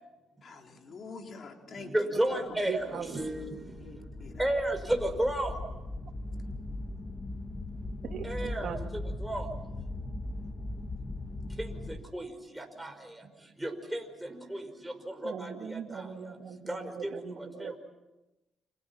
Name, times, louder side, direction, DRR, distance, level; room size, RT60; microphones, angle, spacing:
voice 1, 0.4-1.9 2.3-2.4 3.8-4.3, left 4 dB, 50° left, 3 dB, 3.8 m, -46 dB
voice 2, 1.8-3.8 4.4-5.6 8.2-9.5 11.6-12.3 12.5-12.9 13.6-16.1 16.7-17.1 17.6-17.8, right 1 dB, 5° right, 4 dB, 5.3 m, -33 dB
voice 3, 2.7-3.2 8.0-8.9 15.2-17.7, right 7 dB, 65° right, 2 dB, 3.0 m, -40 dB
sound 1, 2.8-12.0, left 2 dB, 30° left, 1.9 m, -39 dB
29.5 x 27.5 x 5.9 m, 1.0 s
cardioid pair, 90°, 0 cm